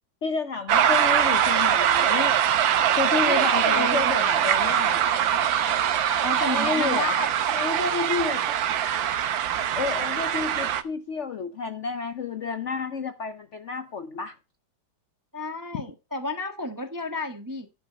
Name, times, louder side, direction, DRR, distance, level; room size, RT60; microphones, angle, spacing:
voice 1, 0.2-2.3 3.0-5.1 6.3-7.1 7.5-8.4 9.8-14.4, left 5 dB, 60° left, 0.7 m, -30 dB
sound 1, 0.7-10.8, right 9 dB, 80° right, 1.6 m, -23 dB
voice 2, 3.2-4.1 6.2-7.4 15.3-17.7, left 2 dB, 15° right, 0.9 m, -32 dB
11.5 x 5.8 x 5.2 m
omnidirectional pair, 2.1 m